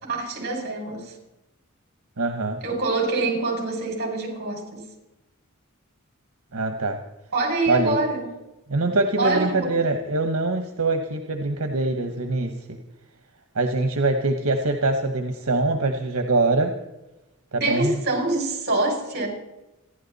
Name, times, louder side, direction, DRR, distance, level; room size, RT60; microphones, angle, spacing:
voice 1, 0.0-1.1 2.6-4.8 7.3-8.3 9.2-9.8 17.5-19.3, right 2 dB, 50° right, 1 dB, 5.9 m, -25 dB
voice 2, 2.2-2.6 6.5-7.0 7.7-8.0 8.7-12.8 13.5-16.8 17.5-18.0, right 2 dB, 80° right, 6 dB, 1.2 m, -23 dB
29.5 x 11.5 x 4.2 m, 0.98 s
head